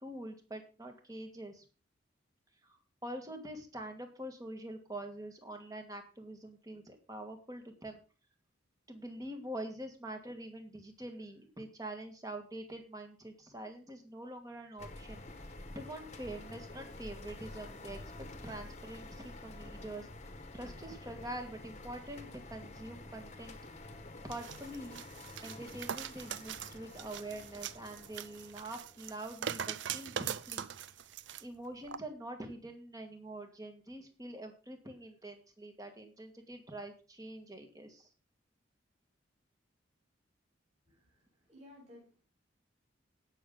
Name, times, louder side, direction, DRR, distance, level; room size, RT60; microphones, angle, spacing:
voice 1, 0.0-1.6 3.0-8.0 8.9-15.2 15.8-20.1 20.5-23.6 24.2-25.0 25.4-30.7 31.4-38.1, right 1 dB, 20° right, 5 dB, 1.8 m, -45 dB
sound 1, 14.8-30.2, left 2 dB, 35° left, 1.3 m, -49 dB
sound 2, 24.3-31.4 31.9-32.0, right 8 dB, 70° right, 0.5 m, -42 dB
voice 2, 40.9-42.2, left 1 dB, 35° right, -5 dB, 7.8 m, -57 dB
17.5 x 6.4 x 3.9 m, 0.34 s
head